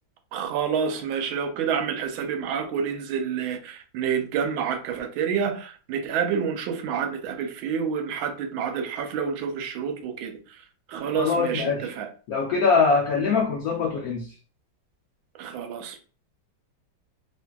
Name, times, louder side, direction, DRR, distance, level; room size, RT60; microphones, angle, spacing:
voice 1, 0.3-10.3 10.9-12.1 15.4-16.0, right 7 dB, 85° right, 1.4 m, -28 dB
voice 2, 11.1-11.9 12.3-14.3, left 5 dB, 80° left, 0.8 m, -23 dB
3.2 x 2.5 x 2.2 m
omnidirectional pair, 2.1 m